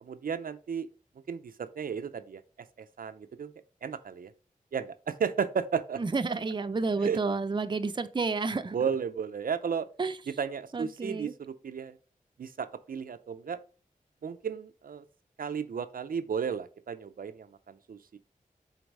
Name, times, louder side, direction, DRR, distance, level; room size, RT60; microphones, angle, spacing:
voice 1, 0.0-0.9 1.3-2.4 2.8-3.5 3.8-4.3 4.7-6.0 7.0-7.2 8.7-9.9 10.4-12.0 12.4-13.6 14.2-15.0 15.4-18.2, right 6 dB, 80° right, 0.5 m, -34 dB
voice 2, 6.0-8.8 10.0-10.1 10.7-11.3, right 4 dB, 30° right, 0.5 m, -30 dB
4.6 x 4.0 x 5.3 m
wide cardioid pair, 95°, 15 cm